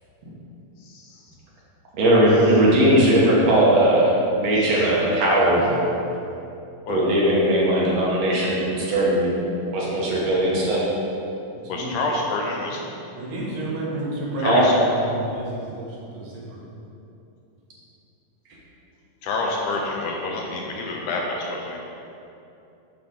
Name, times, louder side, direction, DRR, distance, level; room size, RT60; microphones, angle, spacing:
voice 1, 1.9-5.7 6.9-9.3 9.7-10.8 14.4-14.6, right 1 dB, 65° right, -6 dB, 1.9 m, -19 dB
voice 2, 5.4-5.8 11.5-11.9 13.1-16.6, right 1 dB, 85° right, -4 dB, 3.0 m, -31 dB
voice 3, 11.7-12.8 14.4-14.7 19.2-21.8, left 3 dB, 80° left, 0 dB, 1.9 m, -27 dB
10.0 x 3.5 x 3.6 m, 2.8 s
omnidirectional pair, 3.8 m